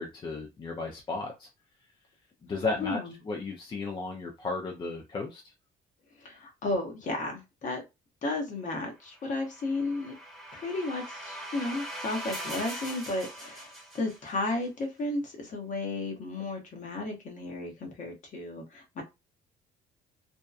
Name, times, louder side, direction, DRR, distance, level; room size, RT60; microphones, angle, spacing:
voice 1, 0.0-1.5 2.5-3.0 3.2-5.5, left 3 dB, 30° left, 0.5 m, -34 dB
voice 2, 2.8-3.2 6.2-7.8 8.2-10.1 10.5-19.0, left 2 dB, 50° left, 1.0 m, -33 dB
sound 1, 9.2-14.5, right 1 dB, ahead, 1.1 m, -41 dB
2.7 x 2.1 x 2.4 m
cardioid pair, 110°, 17 cm